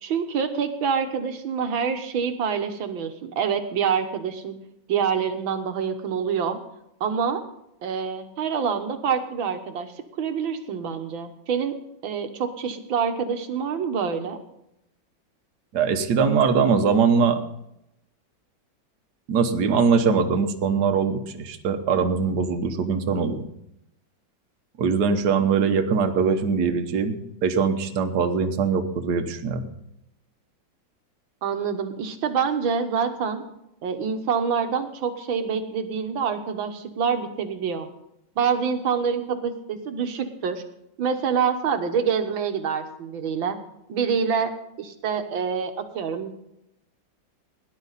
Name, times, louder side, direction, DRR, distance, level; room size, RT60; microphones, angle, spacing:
voice 1, 0.0-4.6 4.9-6.6 7.0-7.4 7.8-9.9 10.2-11.8 12.0-14.4 31.4-33.4 33.8-37.9 38.4-40.6 41.0-43.6 43.9-44.5 44.8-46.4, right 6 dB, 80° right, 7 dB, 2.0 m, -26 dB
voice 2, 15.7-17.4 19.3-23.4 24.8-29.6, right 5 dB, 60° right, 6 dB, 1.6 m, -22 dB
17.5 x 11.0 x 4.1 m, 0.81 s
omnidirectional pair, 2.1 m